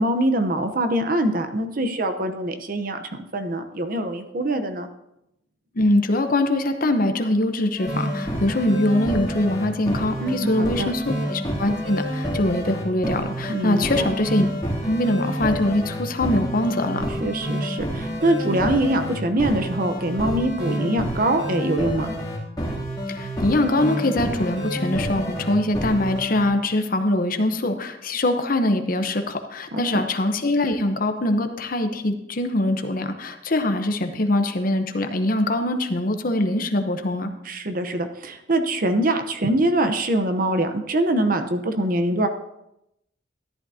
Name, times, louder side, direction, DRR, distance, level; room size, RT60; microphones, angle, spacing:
voice 1, 0.0-3.0 3.3-4.9 10.2-10.9 13.5-14.1 17.2-22.1 29.7-30.0 37.5-42.3, right 1 dB, 50° right, 7 dB, 0.9 m, -23 dB
voice 2, 5.7-14.5 14.8-17.0 23.1-37.3, left 1 dB, 50° left, 7 dB, 0.9 m, -23 dB
sound 1, 7.8-26.5, equal, 20° left, 2.8 m, -28 dB
13.5 x 11.0 x 2.8 m, 0.84 s
head